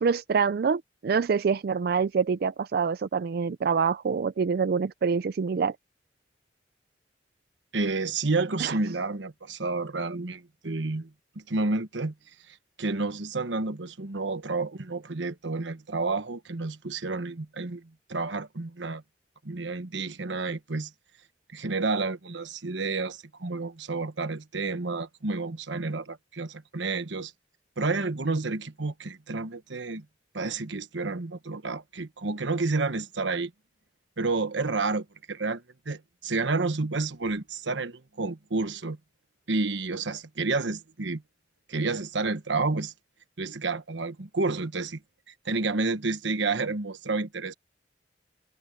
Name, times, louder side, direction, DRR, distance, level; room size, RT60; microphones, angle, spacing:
voice 1, 0.0-5.8 8.6-8.8, right 5 dB, 55° right, 0.4 m, -26 dB
voice 2, 7.7-12.1 12.5-19.0 19.4-20.9 21.5-27.3 27.8-30.0 30.3-33.5 34.2-39.0 39.5-41.2 41.7-42.9 43.4-45.0 45.4-47.5, right 3 dB, 90° right, 1.2 m, -30 dB
head